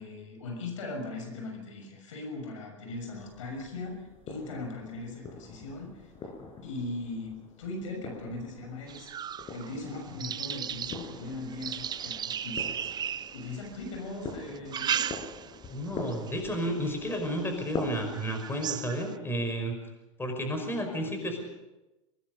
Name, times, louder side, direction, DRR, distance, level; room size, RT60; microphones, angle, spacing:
voice 1, 0.0-6.1 6.6-9.1 9.5-12.9 13.3-15.1, left 2 dB, 75° left, 3 dB, 6.5 m, -39 dB
sound 1, 3.1-18.2, left 3 dB, 35° left, 6.0 m, -44 dB
sound 2, 8.9-13.9 14.5-15.7 16.1-16.5 17.1-17.2 17.6-17.7 18.1-19.1, right 9 dB, 25° right, 0.6 m, -35 dB
voice 2, 15.7-19.7 20.2-21.4, equal, 15° left, 4 dB, 5.5 m, -32 dB
24.5 x 19.5 x 5.5 m, 1.0 s
hypercardioid pair, 90°, 17 cm